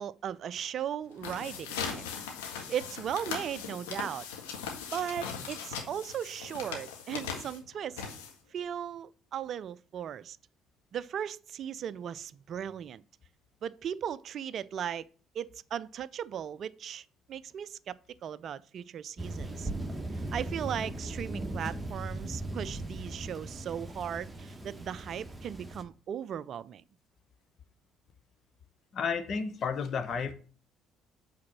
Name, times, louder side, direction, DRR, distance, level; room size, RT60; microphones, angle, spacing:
voice 1, 0.0-2.0 2.7-4.3 4.9-8.0 8.5-10.4 10.9-13.0 13.6-15.1 15.3-19.7 20.3-26.8, right 9 dB, 50° right, 0.4 m, -37 dB
sound 1, 1.1-8.6, left 6 dB, 75° left, 1.7 m, -39 dB
Thunder, 19.2-25.8, right 2 dB, 15° right, 1.2 m, -38 dB
voice 2, 28.9-30.3, left 5 dB, 45° left, 1.0 m, -32 dB
8.5 x 4.1 x 6.0 m
figure-of-eight pair, 50°, 0 cm